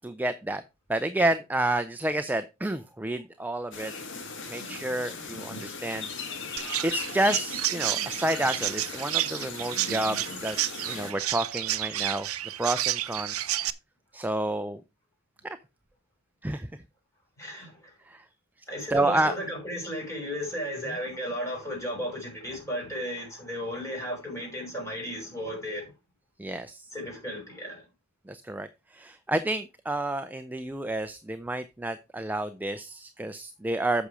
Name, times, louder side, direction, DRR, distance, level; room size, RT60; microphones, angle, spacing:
voice 1, 0.0-0.6 0.9-3.9 4.5-6.1 6.8-10.6 10.9-12.3 12.6-13.5 14.1-14.8 15.4-15.6 16.4-16.7 17.5-17.6 18.1-18.2 18.9-19.3 26.4-26.9 28.3-34.1, right 1 dB, 10° right, 0.4 m, -30 dB
sound 1, 3.7-11.1, left 4 dB, 55° left, 1.8 m, -38 dB
Chirp tweet, 6.6-13.7, right 14 dB, 70° right, 0.7 m, -31 dB
voice 2, 17.4-17.9 18.7-25.9 26.9-27.8, equal, 15° left, 6.0 m, -34 dB
8.4 x 6.2 x 4.9 m
head